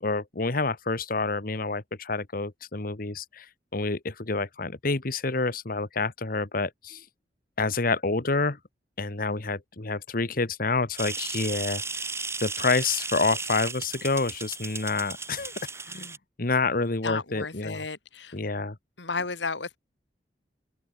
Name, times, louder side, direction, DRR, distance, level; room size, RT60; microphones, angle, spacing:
voice 1, 0.0-3.5 3.7-7.0 7.6-8.6 9.0-12.1 12.4-15.5 15.9-17.8 18.3-18.8, left 3 dB, 55° left, 1.4 m, -28 dB
sound 1, 11.0-16.2, right 4 dB, 15° right, 4.6 m, -35 dB
voice 2, 17.0-18.4 19.0-19.8, left 4 dB, 85° left, 2.4 m, -33 dB
open air
head